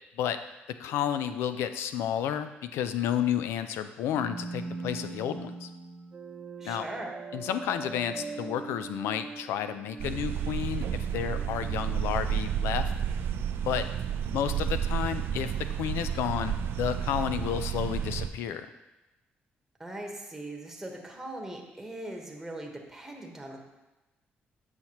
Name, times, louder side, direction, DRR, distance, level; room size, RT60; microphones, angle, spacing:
voice 1, 0.8-5.7 6.6-6.9 7.3-12.9 13.7-13.8 14.3-15.5 15.8-18.7, left 9 dB, 90° left, 10 dB, 0.4 m, -31 dB
sound 1, 4.1-13.1, right 4 dB, 35° right, 0.7 m, -42 dB
voice 2, 6.6-7.1 19.8-23.6, right 1 dB, 10° right, 0 dB, 1.2 m, -40 dB
sound 2, 10.0-18.3, right 9 dB, 70° right, 0.4 m, -31 dB
7.8 x 5.7 x 3.0 m, 1.0 s
cardioid pair, 95°, 4 cm